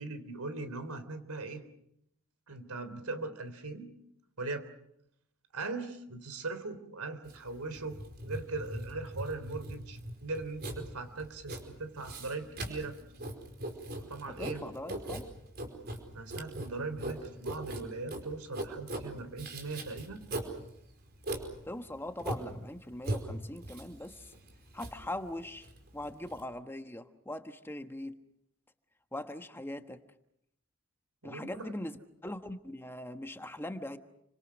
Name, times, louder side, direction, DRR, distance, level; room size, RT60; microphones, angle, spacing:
voice 1, 0.0-1.6 2.5-3.9 4.4-4.7 5.5-8.0 8.2-13.0 14.1-14.7 15.9-20.2 31.2-31.7, right 3 dB, 90° right, 11 dB, 3.6 m, -40 dB
Writing, 7.3-26.4, right 1 dB, 45° right, 4.9 m, -40 dB
voice 2, 14.3-15.3 21.6-24.3 24.7-28.2 29.1-30.0 31.2-32.0 32.2-34.0, left 1 dB, 10° left, 7 dB, 1.2 m, -41 dB
29.5 x 25.5 x 6.3 m, 0.77 s
head